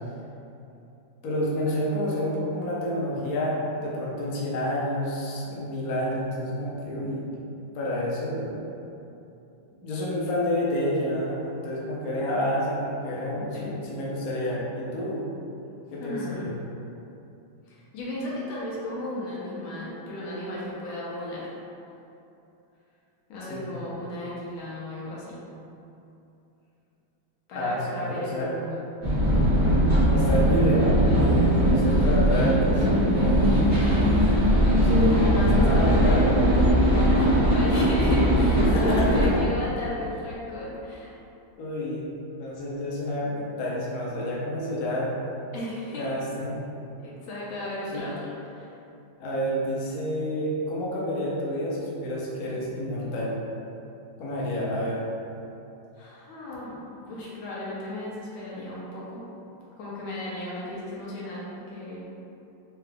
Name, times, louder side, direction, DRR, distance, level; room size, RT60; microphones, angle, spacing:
voice 1, 1.2-7.3 7.7-8.6 9.8-15.2 15.9-16.5 23.4-23.8 27.5-28.5 30.0-34.1 34.8-35.2 35.5-36.3 38.6-39.3 41.6-42.0 42.4-45.1 45.9-46.5 47.9-48.1 49.2-53.4 54.2-55.0, equal, 60° left, -5 dB, 1.0 m, -29 dB
voice 2, 13.4-13.7 16.0-16.5 17.7-21.5 23.3-25.5 27.5-28.8 34.4-34.7 35.1-41.1 45.5-46.1 47.0-48.7 56.0-56.8 57.1-59.2 59.8-62.1, left 1 dB, 80° left, -6 dB, 1.6 m, -34 dB
sound 1, 29.0-39.4, equal, 25° right, 0.9 m, -20 dB
4.5 x 2.4 x 3.3 m, 2.8 s
omnidirectional pair, 2.2 m